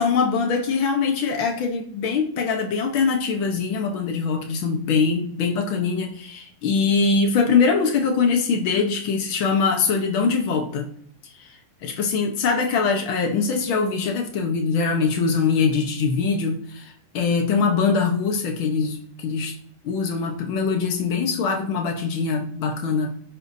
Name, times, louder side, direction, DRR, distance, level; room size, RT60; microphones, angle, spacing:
voice 1, 0.0-10.9 11.4-19.5 19.8-23.1, left 5 dB, 80° left, 2 dB, 1.1 m, -23 dB
16.0 x 10.0 x 2.7 m, 0.64 s
omnidirectional pair, 3.9 m